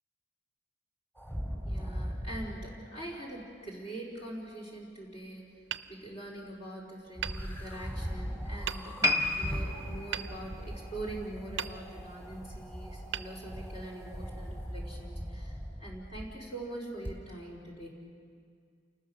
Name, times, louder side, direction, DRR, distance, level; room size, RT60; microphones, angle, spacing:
sound 1, 1.2-2.7 7.2-16.4 17.0-17.1, equal, 15° left, 3.2 m, -39 dB
voice 1, 1.6-5.4 5.9-17.9, right 1 dB, 40° left, -2 dB, 4.3 m, -43 dB
Hammer, 5.7-6.7 7.2-8.1 8.7-9.3 10.1-11.1 11.6-12.3 13.1-14.1, right 9 dB, 80° right, 0.7 m, -41 dB
sound 2, 9.0-12.3 12.6-12.9 13.5-13.6, left 3 dB, 20° right, 1.2 m, -33 dB
29.5 x 20.0 x 6.6 m, 2.2 s
head